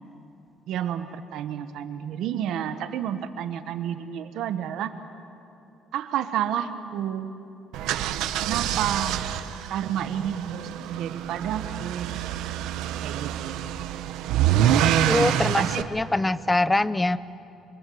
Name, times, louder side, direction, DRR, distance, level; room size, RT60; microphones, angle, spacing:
voice 1, 0.7-5.0 5.9-7.3 8.4-9.2 9.7-12.1 13.0-13.6 15.4-15.9, right 10 dB, 65° right, 9 dB, 1.2 m, -30 dB
sound 1, 7.7-15.8, right 10 dB, 85° right, 1.0 m, -26 dB
voice 2, 15.1-17.2, left 2 dB, 10° left, 16 dB, 0.5 m, -23 dB
26.0 x 23.5 x 7.9 m, 2.8 s
cardioid pair, 165°, 0 cm